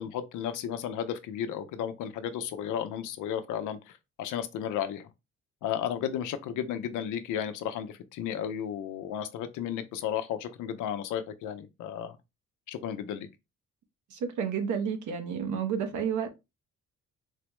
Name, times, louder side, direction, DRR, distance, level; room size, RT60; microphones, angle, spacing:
voice 1, 0.0-5.1 5.6-12.2 12.7-13.3, left 9 dB, 85° left, 0.6 m, -33 dB
voice 2, 14.1-16.3, right 7 dB, 75° right, 1.0 m, -30 dB
4.1 x 2.1 x 3.0 m
cardioid pair, 90°, 30 cm